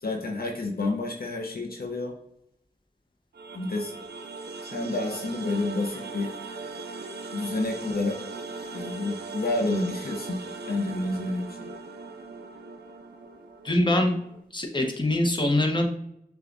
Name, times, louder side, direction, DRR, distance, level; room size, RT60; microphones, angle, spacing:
voice 1, 0.0-2.1 3.5-3.9 4.6-6.3 7.3-8.2 8.7-10.4 10.7-11.6, left 2 dB, 65° left, 1 dB, 0.7 m, -29 dB
sound 1, 3.3-14.4, right 3 dB, 80° right, 0.4 m, -39 dB
voice 2, 13.6-14.2 14.5-15.9, left 1 dB, 30° left, 2 dB, 0.9 m, -23 dB
6.7 x 2.4 x 2.5 m, 0.76 s
cardioid pair, 40°, 17 cm